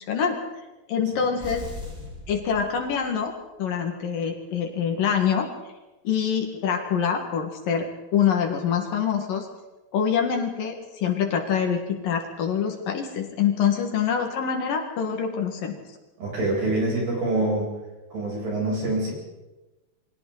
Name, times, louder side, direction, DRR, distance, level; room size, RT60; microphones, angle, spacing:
voice 1, 0.1-0.4 0.9-1.7 2.3-3.3 3.6-5.5 6.0-9.5 9.9-15.8, left 7 dB, 60° left, 3 dB, 3.3 m, -25 dB
sound 1, 1.4-3.3, left 2 dB, 5° right, 5.1 m, -39 dB
voice 2, 16.2-17.7 18.1-19.1, right 2 dB, 70° right, -3 dB, 10.0 m, -25 dB
29.0 x 23.0 x 4.1 m, 1.1 s
omnidirectional pair, 4.7 m